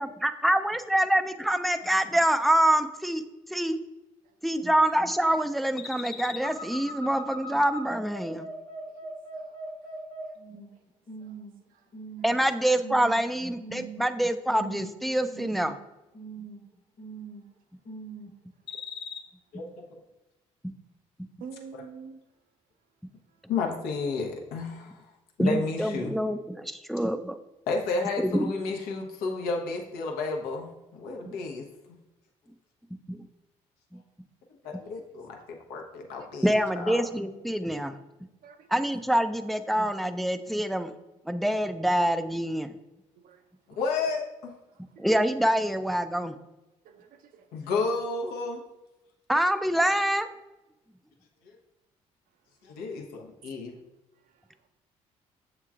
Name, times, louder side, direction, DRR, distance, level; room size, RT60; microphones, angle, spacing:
voice 1, 0.0-3.2 3.5-3.8 4.4-8.5 12.2-15.8 20.6-20.7 25.4-27.4 28.2-28.5 31.3-31.4 33.1-33.2 36.4-38.0 38.7-40.9 41.3-42.7 45.0-46.3 49.3-50.3, right 1 dB, ahead, 0.3 m, -26 dB
sound 1, 5.8-10.7 11.1-11.5 11.9-12.4 12.8-13.2 13.6-14.1 14.5-15.0 15.3-15.8 16.1-16.6 17.0-17.5 17.8-18.3 18.7-19.2, equal, 30° left, 1.0 m, -40 dB
voice 2, 9.3-9.7 12.4-12.5 21.4-22.2 34.8-34.9 35.4-35.8 38.4-38.7 43.2-43.4 43.7-43.8 45.0-45.1 46.8-47.5, right 6 dB, 65° right, 0.5 m, -47 dB
voice 3, 19.5-20.0 23.5-25.1 25.4-26.1 27.7-31.7 34.6-36.5 36.7-37.0 43.8-44.5 47.5-48.6 52.6-53.7, left 3 dB, 75° left, 0.8 m, -31 dB
7.2 x 3.0 x 2.4 m
hypercardioid pair, 55°, 16 cm